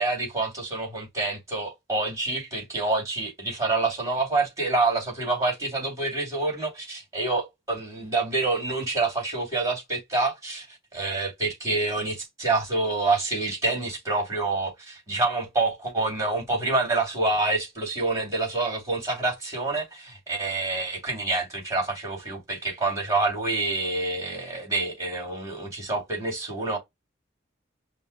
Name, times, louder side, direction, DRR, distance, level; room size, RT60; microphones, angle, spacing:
voice 1, 0.0-26.8, right 3 dB, 20° right, 2.4 m, -27 dB
5.4 x 2.3 x 3.1 m
head